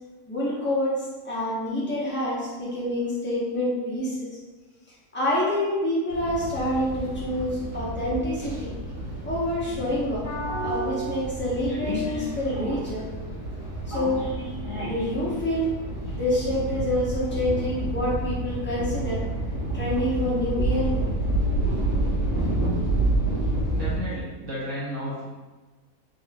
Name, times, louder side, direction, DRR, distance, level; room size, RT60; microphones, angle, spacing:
voice 1, 0.3-4.3 5.1-8.7 9.2-10.3 10.6-13.0 13.9-14.3 14.8-15.7 16.1-19.2 19.7-20.9, left 1 dB, 10° left, -8 dB, 0.6 m, -27 dB
sound 1, 6.1-24.0, right 1 dB, 35° left, 1.1 m, -29 dB
voice 2, 23.7-25.2, equal, 55° right, -8 dB, 1.1 m, -33 dB
3.7 x 2.8 x 2.5 m, 1.3 s
omnidirectional pair, 1.6 m